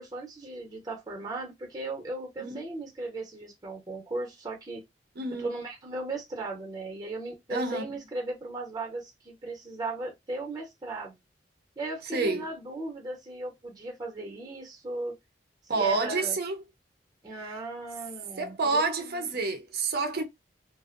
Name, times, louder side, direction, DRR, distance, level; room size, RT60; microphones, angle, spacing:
voice 1, 0.0-4.8 5.3-11.2 11.8-15.2 15.7-16.4 17.2-19.3, right 2 dB, 20° right, 0.8 m, -37 dB
voice 2, 5.2-5.5 7.5-7.8 12.1-12.5 15.7-16.6 18.4-20.2, right 3 dB, 60° right, 0.6 m, -28 dB
2.5 x 2.1 x 2.5 m
head